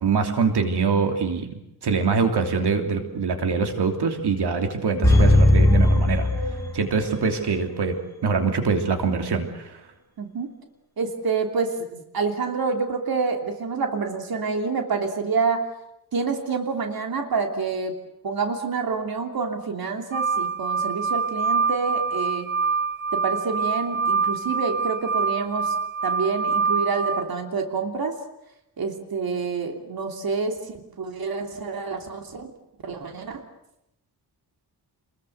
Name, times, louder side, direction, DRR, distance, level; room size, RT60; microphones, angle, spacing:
voice 1, 0.0-1.5 1.8-6.3 6.7-9.8, right 5 dB, 80° right, 5 dB, 3.2 m, -24 dB
sound 1, 5.0-7.2 7.5-7.6, left 1 dB, 5° left, 7.0 m, -18 dB
voice 2, 10.2-10.6 11.0-15.7 16.1-22.5 23.1-25.7 26.0-28.2 28.8-32.5 32.8-33.4, right 4 dB, 65° right, 4 dB, 3.1 m, -27 dB
sound 2, 20.1-27.2, right 5 dB, 30° right, 3.6 m, -25 dB
29.0 x 21.5 x 8.0 m, 0.85 s
wide cardioid pair, 135°, 39 cm